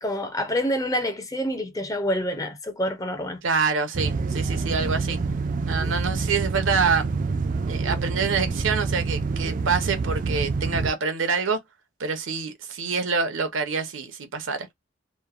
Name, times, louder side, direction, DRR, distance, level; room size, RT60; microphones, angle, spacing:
voice 1, 0.0-3.4 5.8-6.0, equal, 20° left, 0.5 m, -27 dB
voice 2, 3.4-5.2 5.7-7.1 7.7-11.6 12.0-14.7, right 5 dB, 80° right, 0.7 m, -26 dB
sound 1, 3.9-10.9, right 4 dB, 40° right, 0.3 m, -27 dB
3.0 x 2.1 x 2.3 m
head